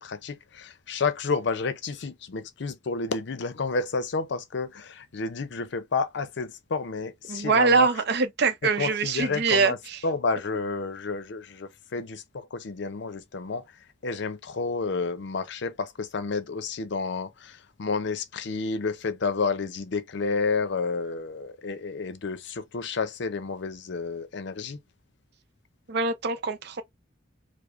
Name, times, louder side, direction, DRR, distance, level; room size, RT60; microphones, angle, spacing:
voice 1, 0.0-7.9 8.8-9.8 10.0-13.6 14.0-17.5 17.8-24.8, left 4 dB, 65° left, 0.5 m, -30 dB
voice 2, 7.3-10.1 25.9-26.8, right 4 dB, 60° right, 0.6 m, -24 dB
4.8 x 2.0 x 2.4 m
head